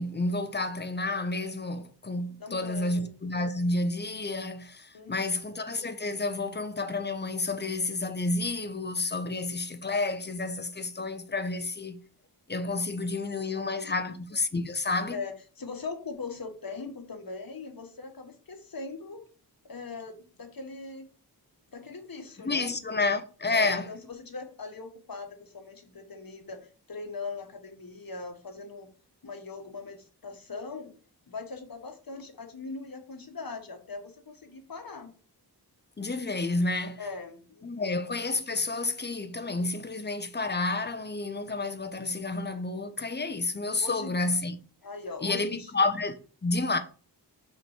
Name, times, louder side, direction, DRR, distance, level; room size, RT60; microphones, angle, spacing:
voice 1, 0.0-12.0 12.5-15.2 22.4-23.9 36.0-37.1 37.6-44.6 45.2-46.8, left 2 dB, 25° left, 0.8 m, -30 dB
voice 2, 2.4-3.1 4.9-5.6 13.5-14.2 15.1-19.2 19.6-21.1 21.7-23.0 23.5-26.6 26.9-28.9 29.2-30.9 31.3-35.1 37.0-37.9 43.8-44.2 44.8-45.7, left 4 dB, 60° left, 1.4 m, -40 dB
5.8 x 4.5 x 4.9 m
wide cardioid pair, 85°, 40 cm